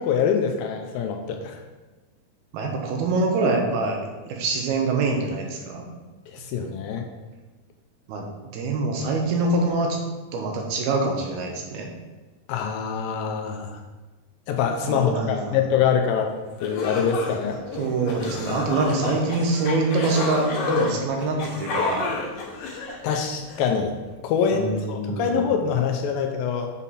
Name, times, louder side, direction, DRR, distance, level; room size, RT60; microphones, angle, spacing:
voice 1, 0.0-1.6 6.3-7.1 12.5-13.8 14.5-16.3 16.6-17.6 23.0-23.9 24.2-26.7, left 7 dB, 80° left, 3 dB, 2.1 m, -24 dB
voice 2, 2.5-4.0 4.3-5.8 8.1-8.3 8.5-10.0 10.3-11.9 14.9-15.6 17.8-22.1 24.5-25.6, right 3 dB, 75° right, 1 dB, 2.9 m, -25 dB
sound 1, 16.2-16.3 16.6-23.7, left 4 dB, 60° left, 2.2 m, -30 dB
7.2 x 5.5 x 4.2 m, 1.2 s
omnidirectional pair, 4.6 m